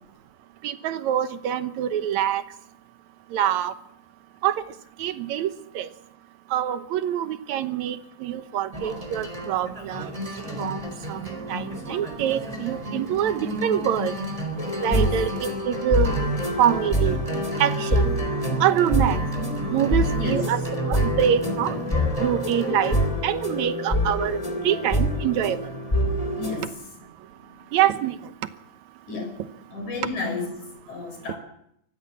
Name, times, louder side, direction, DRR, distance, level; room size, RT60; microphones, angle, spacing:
voice 1, 0.6-2.4 3.3-3.7 4.4-4.6 5.0-5.9 6.5-10.1 10.6-14.1 14.8-17.2 17.6-18.1 18.6-19.3 19.7-20.6 20.9-21.8 22.2-25.7 27.7-28.2, right 10 dB, 70° right, 11 dB, 2.3 m, -25 dB
sound 1, 8.7-23.1, right 1 dB, 10° right, 4.0 m, -32 dB
sound 2, 14.6-26.7, equal, 10° left, 2.5 m, -26 dB
voice 2, 14.9-15.2 20.1-20.5 26.4-26.7 29.1-29.4 29.7-30.6 30.9-31.4, left 3 dB, 70° left, 5 dB, 6.6 m, -31 dB
25.0 x 15.5 x 7.4 m, 0.74 s
omnidirectional pair, 3.5 m